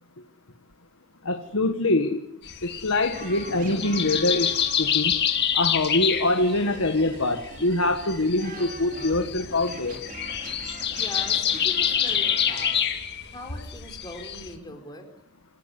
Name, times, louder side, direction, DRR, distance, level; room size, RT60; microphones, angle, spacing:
voice 1, 1.2-2.2 2.6-5.2 5.5-10.1, left 2 dB, 65° left, 5 dB, 1.6 m, -24 dB
sound 1, 2.5-14.5, left 9 dB, 50° left, 2.0 m, -27 dB
sound 2, 3.1-12.8, right 2 dB, 40° right, 3.8 m, -43 dB
voice 2, 11.0-12.7 13.3-15.1, left 1 dB, 20° left, 3 dB, 4.3 m, -40 dB
27.0 x 13.0 x 9.8 m, 0.82 s
head